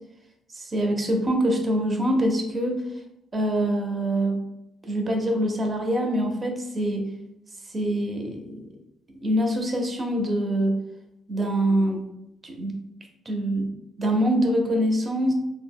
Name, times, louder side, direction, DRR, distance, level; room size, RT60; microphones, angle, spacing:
voice 1, 0.5-2.8 3.3-4.4 4.8-7.1 7.7-8.6 9.2-10.8 11.3-12.1 12.4-12.8 13.3-13.7 14.0-15.3, right 1 dB, 35° right, 3 dB, 0.6 m, -24 dB
3.6 x 2.0 x 2.2 m, 0.86 s
cardioid pair, 90°, 0 cm